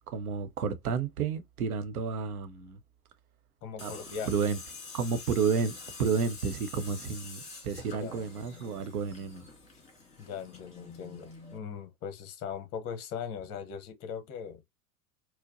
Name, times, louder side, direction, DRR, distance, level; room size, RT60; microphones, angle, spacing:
voice 1, 0.1-2.8 3.8-3.9 4.3-4.6 4.9-9.5, right 5 dB, 70° right, 0.7 m, -31 dB
voice 2, 3.6-4.4 8.0-8.2 10.2-14.6, left 7 dB, 30° left, 0.8 m, -39 dB
Tools, 3.8-11.6, left 4 dB, 15° left, 2.1 m, -46 dB
4.4 x 2.1 x 2.5 m
figure-of-eight pair, 90°, 46 cm